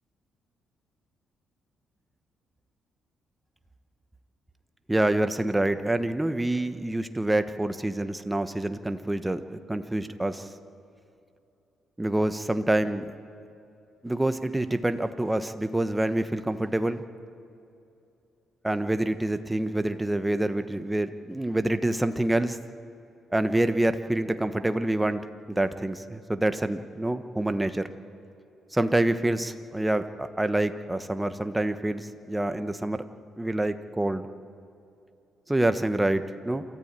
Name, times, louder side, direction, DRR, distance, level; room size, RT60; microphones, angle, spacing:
voice 1, 4.9-10.5 12.0-13.1 14.0-17.0 18.6-22.6 23.3-27.9 28.7-33.0 33.4-34.2 35.5-36.6, right 1 dB, 10° right, 9 dB, 1.2 m, -27 dB
28.0 x 14.0 x 9.0 m, 2.7 s
cardioid pair, 90°, 0 cm